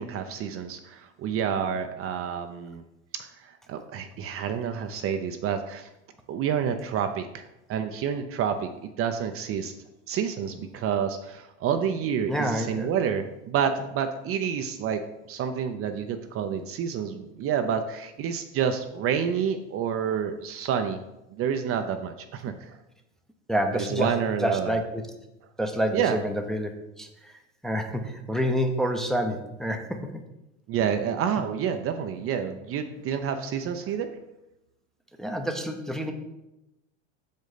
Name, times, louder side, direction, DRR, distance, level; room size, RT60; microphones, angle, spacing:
voice 1, 0.0-2.8 3.2-5.9 6.3-8.7 9.0-9.7 10.1-15.0 15.3-21.0 21.3-22.8 23.8-24.8 25.9-26.2 30.7-34.1, right 8 dB, 40° right, 7 dB, 0.6 m, -29 dB
voice 2, 12.3-12.9 23.5-25.0 25.6-30.2 35.2-36.1, equal, ahead, 3 dB, 0.7 m, -28 dB
6.3 x 5.2 x 4.0 m, 0.92 s
hypercardioid pair, 95°, 36 cm